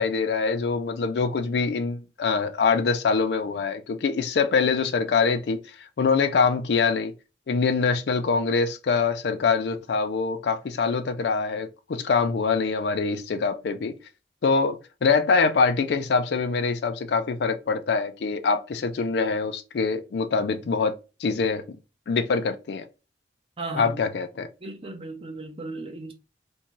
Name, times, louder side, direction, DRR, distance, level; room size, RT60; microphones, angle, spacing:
voice 1, 0.0-7.1 7.5-14.0 14.4-20.9 21.2-21.8 22.1-22.9 23.7-24.5, left 5 dB, 65° left, 0.4 m, -24 dB
voice 2, 23.6-24.0 24.6-26.1, right 2 dB, 30° right, 0.6 m, -35 dB
2.6 x 2.3 x 2.9 m
head